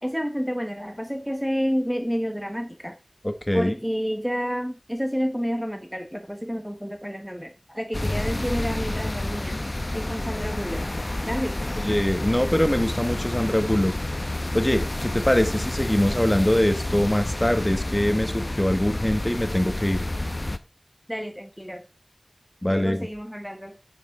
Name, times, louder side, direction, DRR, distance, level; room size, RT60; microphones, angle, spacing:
voice 1, 0.0-3.0 3.5-9.6 9.9-10.9 11.2-11.8 21.1-21.8 22.7-23.8, equal, ahead, 5 dB, 1.1 m, -29 dB
voice 2, 3.2-3.8 11.8-13.9 14.5-20.0 22.6-23.1, left 1 dB, 20° left, 8 dB, 1.6 m, -23 dB
sound 1, 7.9-20.6, left 1 dB, 45° left, 0.9 m, -29 dB
10.5 x 7.9 x 3.5 m, 0.28 s
wide cardioid pair, 50°, 0 cm